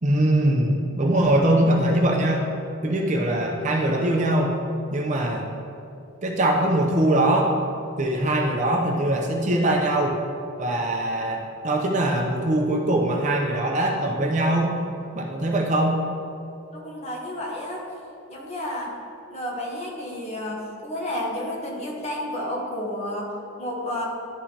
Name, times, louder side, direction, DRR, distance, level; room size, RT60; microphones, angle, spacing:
voice 1, 0.0-2.5 2.8-4.6 4.9-5.4 6.2-7.6 8.0-10.2 10.6-14.8 15.1-16.0, right 1 dB, 35° right, 0 dB, 0.6 m, -22 dB
voice 2, 16.7-17.8 18.3-19.0 19.3-24.0, left 1 dB, 30° left, -3 dB, 1.2 m, -31 dB
11.5 x 4.9 x 2.9 m, 2.6 s
head